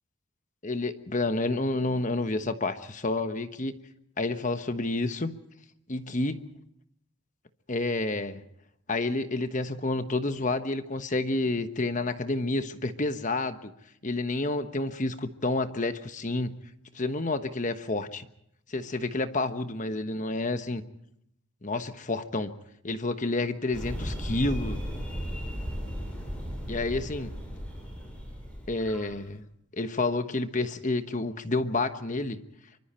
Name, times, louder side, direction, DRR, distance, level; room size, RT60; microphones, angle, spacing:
voice 1, 0.6-3.7 4.2-5.3 5.9-6.4 7.7-8.4 8.9-13.7 14.0-16.6 16.9-18.3 18.7-20.8 21.6-22.5 22.8-24.8 26.7-27.4 28.7-29.4 29.7-32.4, left 2 dB, 35° left, 9 dB, 1.2 m, -29 dB
sound 1, 23.7-29.2, equal, 5° left, 7.6 m, -36 dB
25.5 x 24.5 x 4.4 m, 0.74 s
head